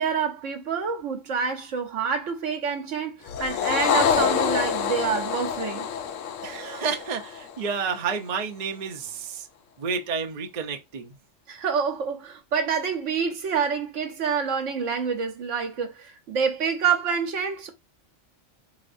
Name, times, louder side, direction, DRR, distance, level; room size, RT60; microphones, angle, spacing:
voice 1, 0.0-5.9 11.5-17.7, right 6 dB, 75° right, 1.2 m, -27 dB
sound 1, 3.3-7.9, left 8 dB, 75° left, 0.9 m, -26 dB
voice 2, 6.4-9.5 9.8-11.2, right 5 dB, 45° right, 0.6 m, -30 dB
4.3 x 2.9 x 2.5 m
omnidirectional pair, 1.3 m